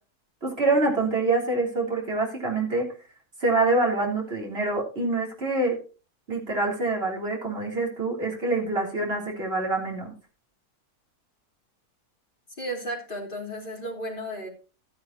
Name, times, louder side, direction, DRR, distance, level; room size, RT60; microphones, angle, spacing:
voice 1, 0.4-2.9 3.4-5.8 6.3-10.1, right 2 dB, 40° right, -1 dB, 3.6 m, -25 dB
voice 2, 12.6-14.5, equal, 35° left, -1 dB, 3.3 m, -34 dB
12.5 x 10.5 x 3.0 m, 0.34 s
omnidirectional pair, 1.6 m